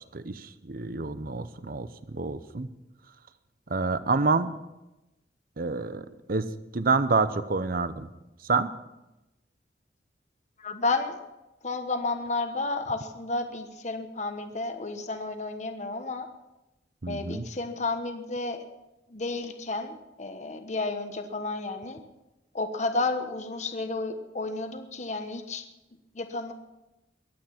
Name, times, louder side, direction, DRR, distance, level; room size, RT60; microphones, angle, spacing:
voice 1, 0.1-2.7 3.7-4.5 5.6-8.1 8.5-8.7 17.0-17.4, right 4 dB, 55° right, 13 dB, 0.8 m, -28 dB
voice 2, 10.6-11.2 11.6-16.3 17.1-18.6 19.1-22.0 22.5-25.6 26.1-26.5, left 3 dB, 40° left, 7 dB, 1.2 m, -31 dB
22.5 x 9.1 x 5.9 m, 0.96 s
head